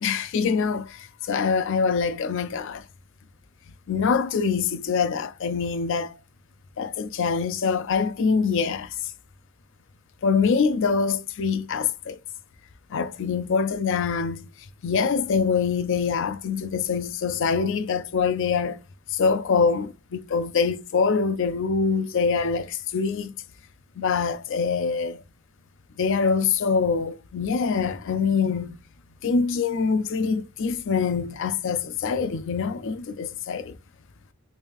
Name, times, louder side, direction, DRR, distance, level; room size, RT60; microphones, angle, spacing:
voice 1, 0.0-2.8 3.9-6.2 6.8-8.9 10.2-12.2 12.9-14.5 14.8-18.8 19.1-23.3 24.0-25.2 26.0-28.8 29.2-33.8, left 5 dB, 60° left, 0.4 m, -24 dB
3.2 x 2.6 x 3.4 m
head